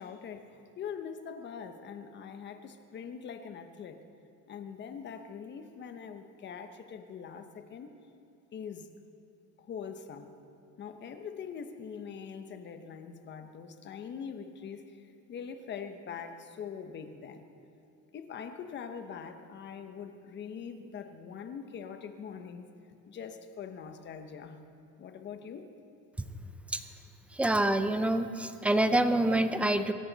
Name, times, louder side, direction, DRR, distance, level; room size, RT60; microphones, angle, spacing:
voice 1, 0.0-4.0 4.5-7.9 8.5-8.9 9.6-10.3 10.8-17.4 18.1-22.7 23.1-24.6 25.0-25.7, left 7 dB, 35° left, 8 dB, 0.9 m, -43 dB
voice 2, 27.3-29.9, right 1 dB, 5° right, 10 dB, 0.4 m, -26 dB
24.0 x 14.5 x 4.0 m, 2.7 s
cardioid pair, 160°, 33 cm